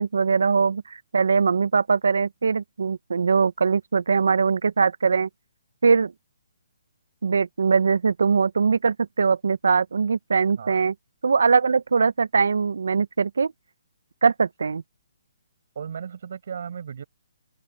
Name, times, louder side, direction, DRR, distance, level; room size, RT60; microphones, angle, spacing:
voice 1, 0.0-5.3 5.8-6.1 7.2-10.9 11.2-13.5 14.2-14.8, right 5 dB, 85° right, 0.5 m, -21 dB
voice 2, 15.8-17.0, right 7 dB, 50° right, 7.6 m, -35 dB
open air
hypercardioid pair, 175°, 0 cm